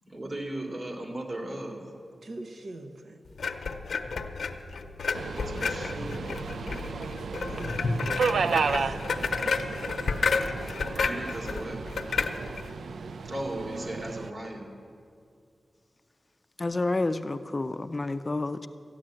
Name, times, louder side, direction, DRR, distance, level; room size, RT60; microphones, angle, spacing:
voice 1, 0.1-1.8 5.5-7.0 9.4-9.5 11.0-11.8 13.2-14.7, right 1 dB, 40° right, 0 dB, 2.4 m, -37 dB
voice 2, 2.2-3.2 7.5-9.7, right 2 dB, 70° right, 4 dB, 1.0 m, -42 dB
sound 1, 3.4-12.7, left 4 dB, 85° left, 0.7 m, -31 dB
Subway metro underground, 5.1-14.3, right 5 dB, 90° right, 0.4 m, -33 dB
voice 3, 16.6-18.7, left 2 dB, 30° left, 10 dB, 0.4 m, -29 dB
14.0 x 9.7 x 7.6 m, 2.3 s
wide cardioid pair, 105°, 0 cm